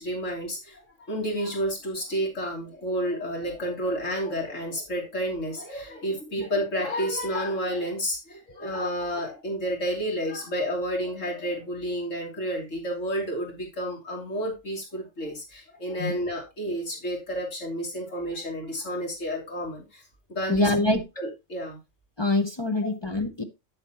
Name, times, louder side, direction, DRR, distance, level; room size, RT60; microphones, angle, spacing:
voice 1, 0.0-20.0 20.3-20.7 21.2-21.8, equal, 75° left, -2 dB, 3.3 m, -30 dB
voice 2, 20.5-21.0 22.2-23.4, left 2 dB, 25° left, 6 dB, 0.6 m, -24 dB
9.4 x 7.4 x 2.9 m, 0.24 s
omnidirectional pair, 1.3 m